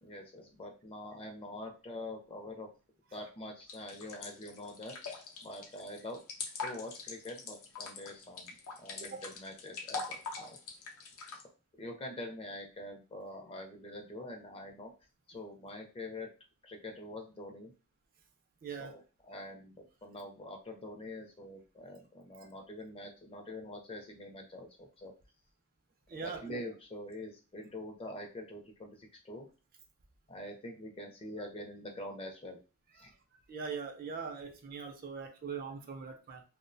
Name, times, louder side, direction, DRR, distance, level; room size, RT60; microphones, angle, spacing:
voice 1, 0.0-2.7 3.1-6.2 6.6-10.6 11.3-11.4 11.8-14.9 15.3-16.3 16.6-17.7 18.8-25.1 26.1-29.5 30.3-32.6 32.9-33.1, left 1 dB, 25° left, 3 dB, 0.5 m, -45 dB
sound 1, 3.7-11.4, left 4 dB, 75° left, 0.6 m, -43 dB
voice 2, 18.6-18.9 22.4-22.5 26.1-26.6 33.0-33.1 33.5-36.4, right 5 dB, 45° right, 5 dB, 0.4 m, -41 dB
2.3 x 2.1 x 2.6 m, 0.33 s
head